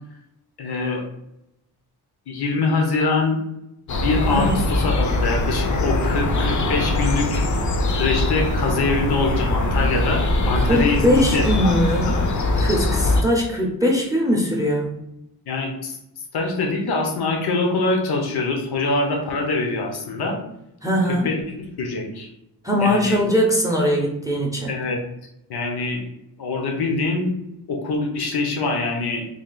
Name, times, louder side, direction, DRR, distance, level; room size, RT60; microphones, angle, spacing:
voice 1, 0.6-1.0 2.3-3.4 3.9-7.5 7.9-12.3 15.5-16.0 16.3-20.4 21.2-21.4 21.8-22.3 22.8-23.2 24.7-25.0 25.5-26.0 26.4-27.3 27.7-29.3, left 3 dB, 80° left, 2 dB, 0.8 m, -24 dB
sound 1, 3.9-13.2, left 2 dB, 50° left, 0.5 m, -22 dB
voice 2, 4.3-4.6 10.6-12.2 12.6-15.0 20.8-21.3 22.6-24.7, equal, 10° right, 0 dB, 0.5 m, -21 dB
3.3 x 2.3 x 3.8 m, 0.83 s
wide cardioid pair, 135°, 38 cm